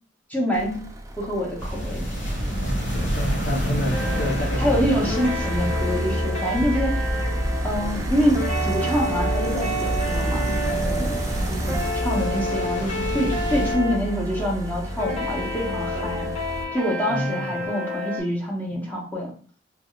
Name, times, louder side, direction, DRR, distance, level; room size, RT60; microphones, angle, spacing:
voice 1, 0.3-0.8 1.2-2.0 4.1-4.3 4.6-7.0 7.6-11.1 11.5-16.3 16.7-19.3, equal, 10° left, -3 dB, 1.0 m, -26 dB
sound 1, 0.5-16.7, right 1 dB, 15° right, 0.4 m, -30 dB
sound 2, 1.6-13.7, equal, 80° left, 1.6 m, -29 dB
voice 2, 2.9-5.2 17.1-17.6, left 1 dB, 55° left, -7 dB, 0.9 m, -29 dB
sound 3, 3.9-18.2, equal, 35° left, 1.4 m, -30 dB
3.4 x 3.2 x 2.4 m, 0.42 s
head